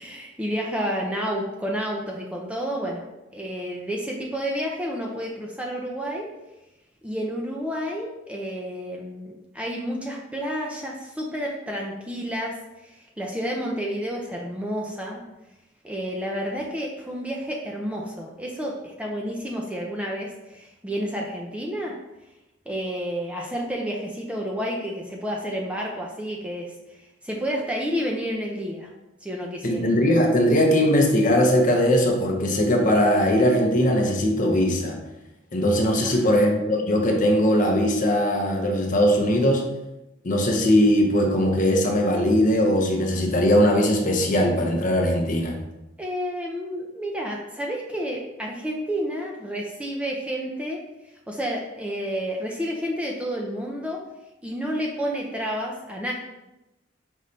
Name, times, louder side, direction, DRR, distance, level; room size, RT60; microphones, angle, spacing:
voice 1, 0.0-3.0 3.3-6.3 7.0-15.2 15.8-22.0 22.7-26.7 27.2-28.9 29.2-29.9 36.0-36.4 46.0-50.8 51.3-54.0 54.4-56.1, equal, 5° right, -1 dB, 0.4 m, -30 dB
voice 2, 29.6-35.0 35.5-39.6 40.2-45.6, equal, 40° left, 2 dB, 0.6 m, -20 dB
5.3 x 3.1 x 2.6 m, 0.96 s
head